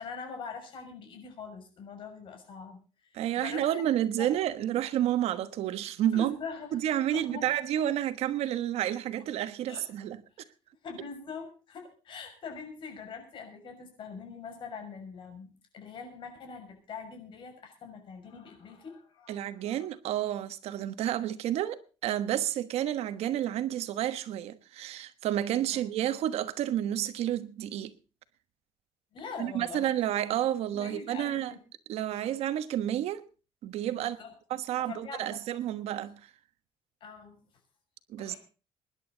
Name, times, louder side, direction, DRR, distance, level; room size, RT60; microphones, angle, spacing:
voice 1, 0.0-4.3 6.1-6.8 7.1-7.5 9.7-9.8 10.8-19.8 25.7-25.8 29.1-29.9 30.7-31.6 32.1-32.3 33.9-34.3 34.8-35.4 35.7-35.8 37.0-37.4 38.2-38.4, left 5 dB, 50° left, 6.4 m, -43 dB
voice 2, 3.1-6.4 6.7-10.2 11.0-11.1 19.3-27.9 29.4-31.5 31.9-33.3 33.6-34.2 34.5-36.3 38.1-38.3, right 11 dB, 75° right, 1.3 m, -30 dB
24.5 x 11.0 x 3.9 m
cardioid pair, 155°, 11 cm